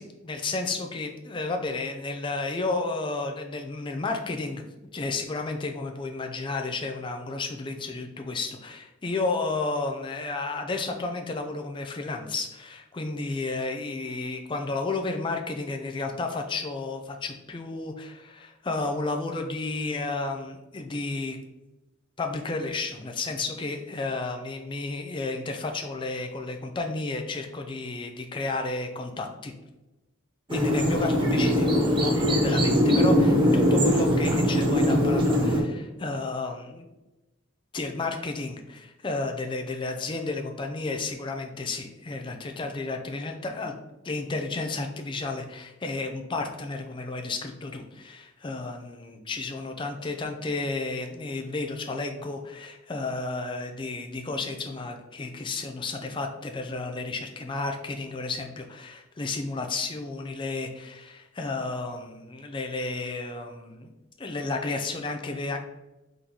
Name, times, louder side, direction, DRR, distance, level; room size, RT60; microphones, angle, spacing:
voice 1, 0.0-4.6 4.9-21.4 22.2-29.5 30.5-36.9 37.7-43.7 44.1-63.9 64.2-65.6, left 3 dB, 25° left, 4 dB, 0.4 m, -32 dB
sound 1, 30.5-35.6, equal, 25° right, 0.6 m, -21 dB
3.8 x 3.8 x 2.9 m, 1.0 s
head